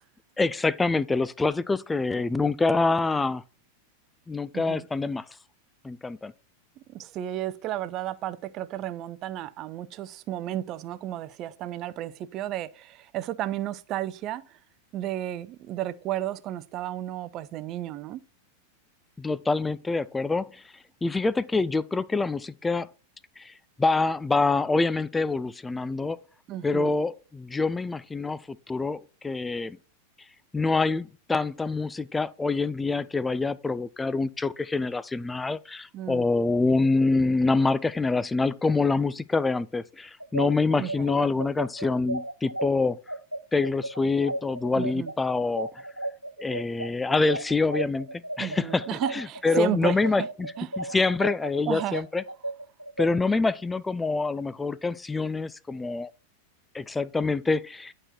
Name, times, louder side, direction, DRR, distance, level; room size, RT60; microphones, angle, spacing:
voice 1, 0.4-3.4 4.3-5.2 5.8-6.3 19.2-20.6 21.0-22.9 23.4-23.5 23.8-26.2 26.6-29.8 30.5-43.0 43.5-45.7 46.4-48.8 49.1-50.5 50.8-52.2 53.0-56.1 56.7-57.9, left 3 dB, 10° left, 0.4 m, -26 dB
voice 2, 4.5-4.9 6.8-14.6 14.9-18.2 26.5-26.9 35.9-36.3 40.8-41.1 44.7-45.1 48.4-50.3 50.6-50.9 51.7-52.0, right 13 dB, 35° right, 0.6 m, -33 dB
sound 1, 40.2-49.6 50.0-53.1, right 1 dB, 90° right, 0.5 m, -33 dB
11.0 x 4.3 x 4.4 m
figure-of-eight pair, 90°, 0 cm